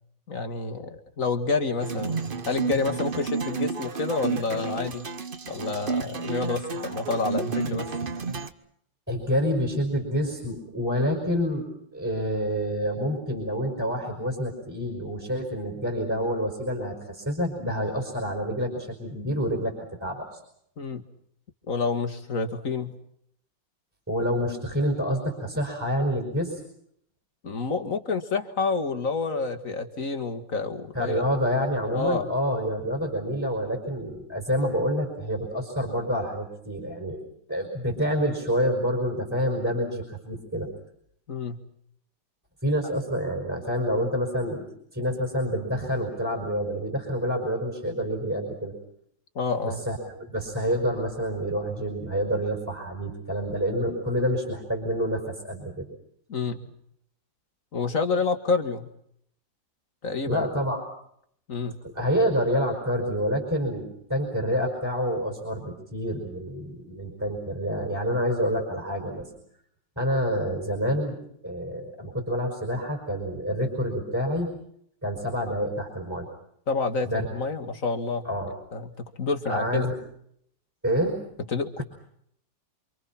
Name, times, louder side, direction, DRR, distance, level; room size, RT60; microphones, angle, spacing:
voice 1, 0.3-5.1 5.5-7.9 20.8-21.1 21.7-22.9 27.4-31.2 31.9-32.3 41.3-41.6 49.4-49.8 56.3-56.7 57.7-58.9 60.0-60.5 61.5-61.8 76.7-78.3 78.7-79.9 81.5-81.8, left 4 dB, 45° left, 8 dB, 2.2 m, -28 dB
sound 1, 1.8-8.5, right 4 dB, 35° right, 1.0 m, -31 dB
voice 2, 9.1-11.7 11.9-19.7 20.0-20.4 24.1-26.6 30.9-37.2 37.5-40.7 42.6-48.7 49.6-55.9 60.3-60.8 61.8-69.3 70.0-71.2 71.4-74.5 75.0-76.3 77.1-77.3 78.2-78.5 79.5-79.9 80.8-81.2, equal, 10° right, 1 dB, 5.3 m, -27 dB
28.0 x 26.0 x 5.9 m, 0.70 s
omnidirectional pair, 2.1 m